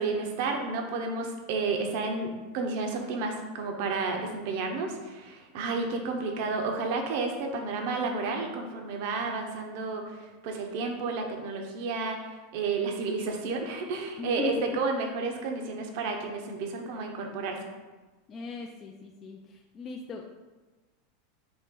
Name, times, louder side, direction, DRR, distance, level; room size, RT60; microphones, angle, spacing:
voice 1, 0.0-17.6, right 4 dB, 65° right, 3 dB, 0.7 m, -31 dB
voice 2, 14.2-14.5 18.3-20.3, left 5 dB, 35° left, 1 dB, 0.3 m, -38 dB
4.3 x 2.9 x 3.6 m, 1.2 s
supercardioid pair, 120°, 0 cm